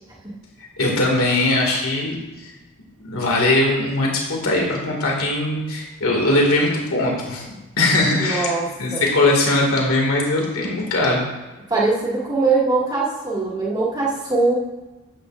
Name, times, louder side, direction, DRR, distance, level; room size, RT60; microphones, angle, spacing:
voice 1, 0.8-2.2 3.0-7.5 7.8-8.5 8.8-11.3, left 2 dB, 70° left, -1 dB, 2.2 m, -20 dB
voice 2, 8.2-8.7 8.9-9.1 11.7-14.5, right 3 dB, 20° right, -6 dB, 2.1 m, -21 dB
11.5 x 8.2 x 2.5 m, 1.1 s
head